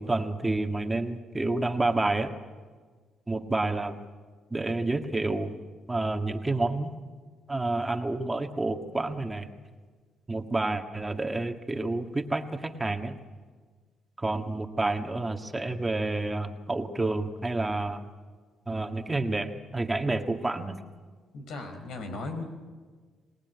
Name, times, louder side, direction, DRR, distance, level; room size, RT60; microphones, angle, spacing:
voice 1, 0.0-2.3 3.3-3.9 4.5-5.5 5.9-6.9 7.5-9.5 10.3-13.1 14.2-18.0 18.7-20.8, right 2 dB, 15° right, 5 dB, 1.8 m, -29 dB
voice 2, 21.3-22.4, left 3 dB, 80° left, 6 dB, 4.7 m, -36 dB
26.0 x 19.0 x 9.6 m, 1.5 s
cardioid pair, 90°, 0 cm